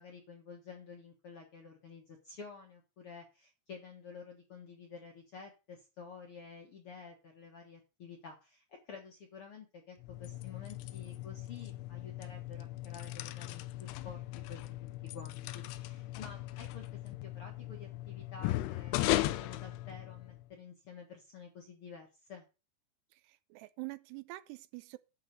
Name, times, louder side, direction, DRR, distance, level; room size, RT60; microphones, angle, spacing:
voice 1, 0.0-14.7 15.1-22.5, left 5 dB, 55° left, 1.6 m, -51 dB
sound 1, 10.0-20.5, left 16 dB, 85° left, 2.7 m, -38 dB
voice 2, 23.2-25.0, right 22 dB, 85° right, 2.7 m, -45 dB
11.5 x 4.0 x 7.6 m
omnidirectional pair, 4.7 m